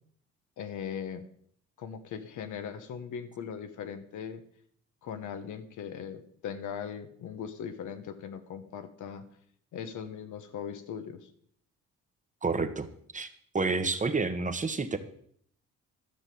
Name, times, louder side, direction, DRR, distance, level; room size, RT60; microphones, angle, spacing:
voice 1, 0.6-1.2 1.8-4.4 5.0-9.2 9.7-11.3, left 7 dB, 75° left, 9 dB, 1.4 m, -39 dB
voice 2, 12.4-12.9 13.1-13.3 13.5-15.0, right 4 dB, 25° right, 9 dB, 1.2 m, -29 dB
12.5 x 5.9 x 7.0 m, 0.62 s
cardioid pair, 90°, 30 cm